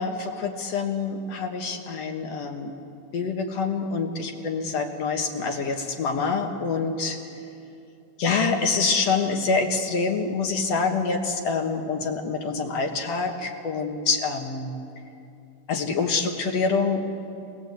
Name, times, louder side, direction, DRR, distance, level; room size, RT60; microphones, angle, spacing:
voice 1, 0.0-2.7 3.1-7.2 8.2-14.7 15.7-17.1, left 4 dB, 55° left, 3 dB, 2.2 m, -26 dB
25.5 x 20.0 x 8.1 m, 2.7 s
omnidirectional pair, 3.9 m